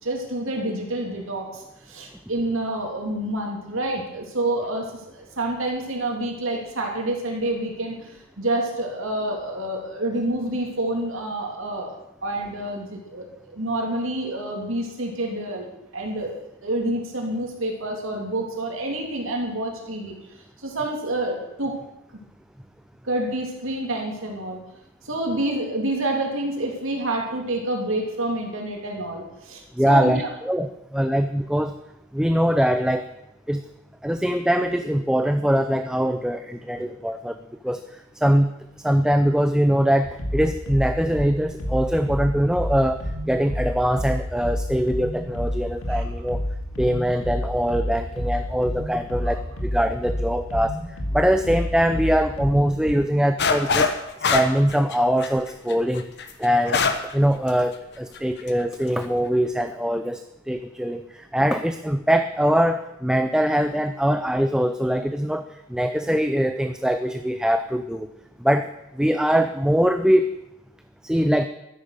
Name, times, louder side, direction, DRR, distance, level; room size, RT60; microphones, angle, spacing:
voice 1, 0.0-11.9 12.2-15.7 15.9-21.7 23.0-24.6 25.0-30.3 45.9-46.0 49.2-49.4, right 1 dB, 65° right, 1 dB, 3.0 m, -28 dB
voice 2, 29.8-31.7 32.1-33.1 33.5-33.6 34.0-37.4 37.6-37.8 38.2-38.5 38.8-46.4 46.8-50.8 51.1-53.9 54.3-56.1 56.4-56.8 57.1-60.2 60.5-65.4 65.7-68.1 68.4-68.7 68.9-70.3 71.0-71.5, equal, 5° right, 8 dB, 0.4 m, -22 dB
sound 1, 40.0-52.9, equal, 70° left, 2.2 m, -29 dB
sound 2, 53.4-54.0 54.2-57.1 57.5-57.6 58.2-58.5, left 5 dB, 55° left, 1.2 m, -22 dB
13.0 x 10.5 x 6.6 m, 0.87 s
head